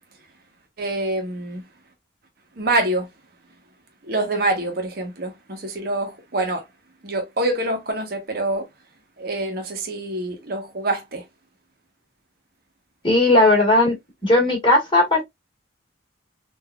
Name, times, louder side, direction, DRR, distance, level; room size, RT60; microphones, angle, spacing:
voice 1, 0.8-1.6 2.6-3.1 4.0-6.7 7.0-8.7 9.2-11.2, right 2 dB, 50° right, 0.9 m, -25 dB
voice 2, 13.0-14.0 14.2-15.2, left 2 dB, 25° left, 1.8 m, -16 dB
3.7 x 2.6 x 2.2 m
head